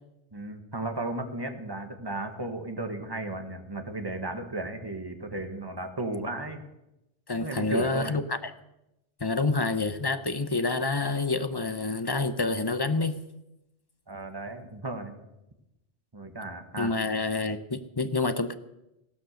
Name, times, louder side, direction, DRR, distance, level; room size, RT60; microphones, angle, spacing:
voice 1, 0.3-6.6 7.4-8.2 14.1-15.2 16.1-17.0, right 2 dB, 20° right, 1.5 m, -35 dB
voice 2, 7.3-8.5 9.2-13.2 16.8-18.5, left 3 dB, 25° left, 0.6 m, -28 dB
15.5 x 13.0 x 6.5 m
omnidirectional pair, 1.2 m